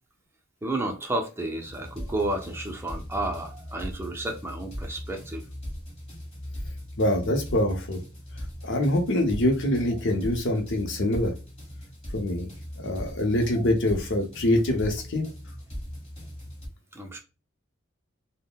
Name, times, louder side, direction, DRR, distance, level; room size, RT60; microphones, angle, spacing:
voice 1, 0.6-5.4 16.9-17.2, right 2 dB, 10° right, 0.5 m, -31 dB
sound 1, 1.6-16.7, equal, 30° left, 1.3 m, -39 dB
voice 2, 7.0-8.0 8.6-11.3 12.1-12.5 12.8-15.2, left 1 dB, 65° left, 0.7 m, -24 dB
3.6 x 2.1 x 2.3 m
head